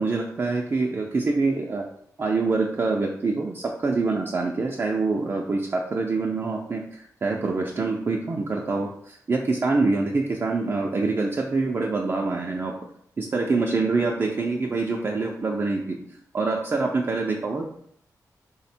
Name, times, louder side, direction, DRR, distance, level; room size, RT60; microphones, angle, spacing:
voice 1, 0.0-1.9 2.2-12.7 13.2-16.0 16.3-17.6, right 3 dB, 35° right, 0 dB, 0.4 m, -25 dB
3.2 x 2.1 x 4.2 m, 0.68 s
wide cardioid pair, 105°, 6 cm